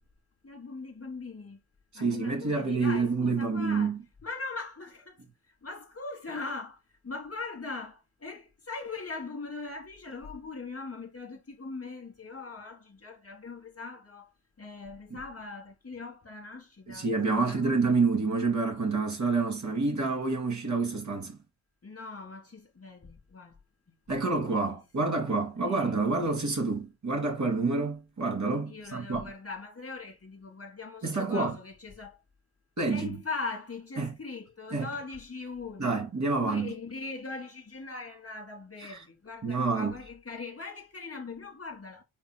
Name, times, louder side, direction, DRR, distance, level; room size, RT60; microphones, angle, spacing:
voice 1, 0.4-1.6 1.9-3.9 4.2-5.2 5.5-14.3 14.6-17.6 21.8-23.6 24.1-24.3 24.6-24.8 25.6-25.9 28.7-32.2 32.9-36.1 36.4-42.0, left 3 dB, 30° left, 1.7 m, -40 dB
voice 2, 2.0-4.0 15.1-15.2 16.9-21.4 24.1-29.2 31.0-31.6 32.8-33.2 34.0-34.1 34.7-34.9 35.8-36.7 38.8-39.0 39.4-39.9, right 3 dB, 35° right, 2.5 m, -28 dB
5.6 x 4.2 x 2.2 m
supercardioid pair, 55°, 48 cm